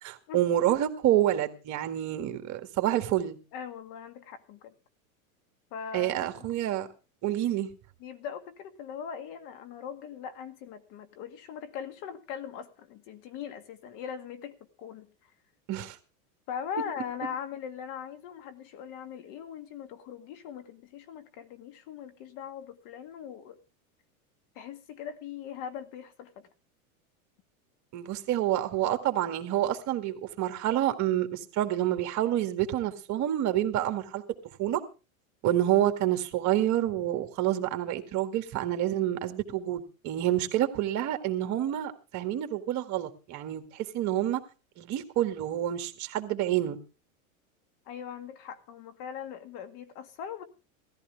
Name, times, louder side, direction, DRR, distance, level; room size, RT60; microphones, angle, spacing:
voice 1, 0.0-3.4 5.9-6.9 7.2-7.7 15.7-16.0 27.9-34.2 34.6-34.8 35.4-44.4 44.8-46.8, right 12 dB, 40° right, 2.0 m, -28 dB
voice 2, 3.5-4.7 5.7-6.5 8.0-15.3 16.5-23.6 24.6-26.5 47.9-50.4, left 8 dB, 50° left, 2.0 m, -40 dB
17.5 x 14.5 x 3.5 m
supercardioid pair, 125°, 43 cm